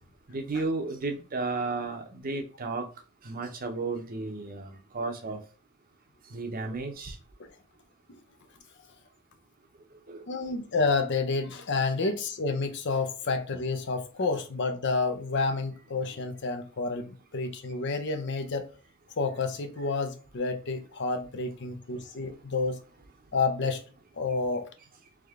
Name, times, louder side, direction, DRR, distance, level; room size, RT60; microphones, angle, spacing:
voice 1, 0.3-2.8 3.2-5.4 6.3-7.1 10.1-10.2 12.0-12.1, right 3 dB, 40° right, 0.7 m, -33 dB
voice 2, 10.3-18.7 19.2-22.8 23.3-23.8 24.2-24.7, left 3 dB, 55° left, 0.6 m, -29 dB
3.5 x 3.3 x 3.6 m
head